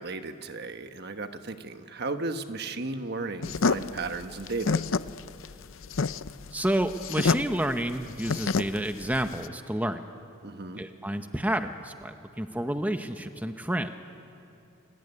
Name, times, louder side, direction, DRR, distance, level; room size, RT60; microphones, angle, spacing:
voice 1, 0.0-4.8 10.4-10.8, right 3 dB, 50° right, 8 dB, 1.3 m, -35 dB
sound 1, 3.4-9.5, left 4 dB, 75° left, 0.6 m, -28 dB
voice 2, 6.5-10.1 10.8-13.9, right 1 dB, 10° right, 7 dB, 0.9 m, -30 dB
28.0 x 20.5 x 9.7 m, 2.9 s
head